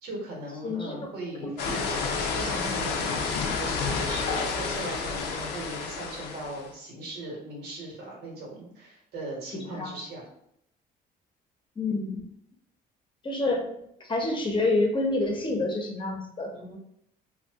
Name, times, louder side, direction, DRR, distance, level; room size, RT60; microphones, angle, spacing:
voice 1, 0.0-10.3 16.5-16.8, right 1 dB, 90° right, -2 dB, 1.2 m, -39 dB
voice 2, 0.6-1.0 1.4-1.7 4.3-4.5 9.8-9.9 11.8-12.2 13.2-13.8 14.1-16.5, left 2 dB, 30° left, 1 dB, 0.7 m, -28 dB
Heavy rain in a backyard with people talking, 1.6-6.7, left 4 dB, 85° left, 0.5 m, -30 dB
2.6 x 2.3 x 3.4 m, 0.73 s
cardioid pair, 110°, 17 cm